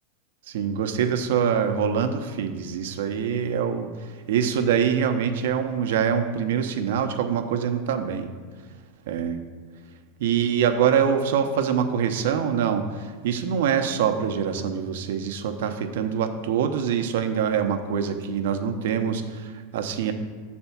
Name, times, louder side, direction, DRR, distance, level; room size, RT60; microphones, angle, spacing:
voice 1, 0.5-3.9 4.3-8.3 9.1-9.4 10.2-20.1, right 7 dB, 75° right, 7 dB, 0.7 m, -24 dB
7.1 x 4.3 x 5.8 m, 1.5 s
supercardioid pair, 160°, 0 cm